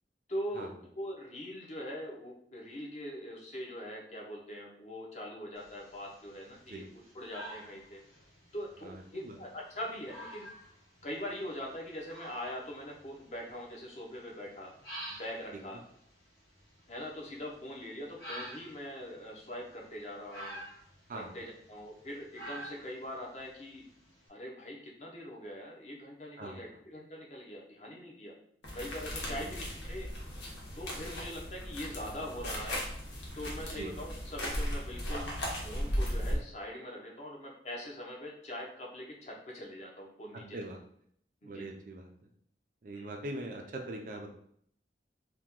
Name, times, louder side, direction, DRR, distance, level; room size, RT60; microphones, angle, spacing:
voice 1, 0.3-6.9 7.1-8.0 8.5-10.5 11.0-14.7 15.2-15.8 16.9-20.6 21.1-23.8 24.3-28.3 28.7-30.1 30.7-32.8 33.4-35.3 35.6-40.6 41.5-41.7 42.9-43.1, equal, 40° left, -2 dB, 0.7 m, -42 dB
sound 1, 5.6-24.3, equal, 60° left, 1.1 m, -50 dB
sound 2, 28.6-36.4, equal, 80° left, 0.8 m, -37 dB
voice 2, 41.4-42.1 42.8-44.3, right 2 dB, 45° right, 2 dB, 0.4 m, -41 dB
2.8 x 2.2 x 3.6 m, 0.66 s
head